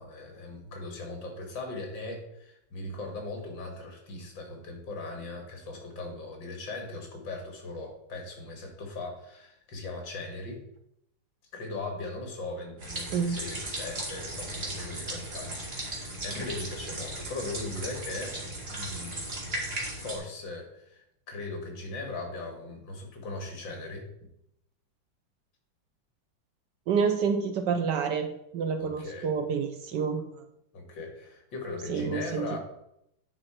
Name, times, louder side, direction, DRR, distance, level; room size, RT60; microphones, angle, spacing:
voice 1, 0.0-10.6 11.5-18.4 18.7-24.1 28.8-29.3 30.7-32.6, left 2 dB, 65° left, 3 dB, 2.5 m, -39 dB
sound 1, 12.8-20.2, right 1 dB, 30° right, 2.0 m, -36 dB
voice 2, 26.9-30.2 31.9-32.6, right 6 dB, 70° right, 7 dB, 1.2 m, -28 dB
9.8 x 4.8 x 4.3 m, 0.78 s
omnidirectional pair, 2.2 m